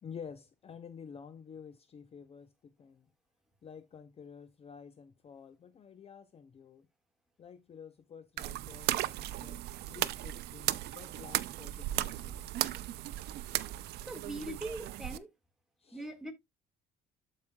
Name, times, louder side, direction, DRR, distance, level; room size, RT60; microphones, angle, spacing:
voice 1, 0.0-3.1 3.6-6.9 7.4-12.4 15.8-16.1, left 7 dB, 35° left, 0.6 m, -50 dB
sound 1, 8.4-15.2, right 15 dB, 75° right, 0.6 m, -36 dB
voice 2, 14.1-15.3 15.9-16.3, right 1 dB, 5° right, 1.8 m, -41 dB
13.0 x 4.9 x 2.3 m
cardioid pair, 110°, 17 cm